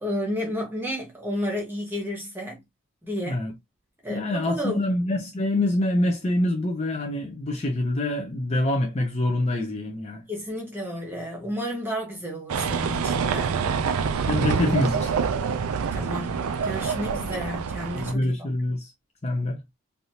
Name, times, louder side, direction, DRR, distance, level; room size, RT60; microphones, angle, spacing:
voice 1, 0.0-2.6 3.0-3.4 4.0-4.9 10.3-13.6 15.9-18.5, equal, 10° right, 1.1 m, -31 dB
voice 2, 3.2-3.5 4.1-10.2 14.3-15.1 18.0-18.9 19.2-19.6, left 1 dB, 30° left, 0.6 m, -25 dB
sound 1, 12.5-18.1, right 6 dB, 85° right, 0.4 m, -26 dB
3.3 x 2.5 x 2.8 m
head